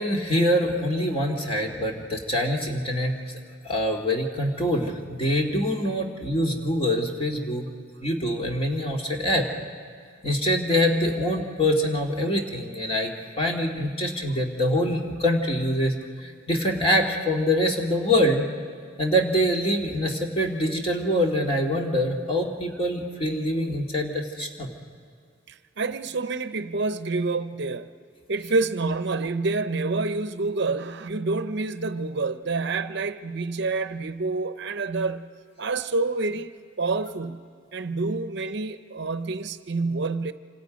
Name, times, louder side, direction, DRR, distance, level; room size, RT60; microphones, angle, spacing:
voice 1, 0.0-3.2 3.6-7.6 8.0-9.5 10.2-13.1 13.4-15.9 16.2-18.5 19.0-24.7, equal, 30° left, 2.2 m, -24 dB
voice 2, 25.5-27.9 28.3-35.3 35.6-36.5 36.8-37.4 37.7-40.3, right 3 dB, 60° right, 0.7 m, -28 dB
27.0 x 26.0 x 5.2 m
head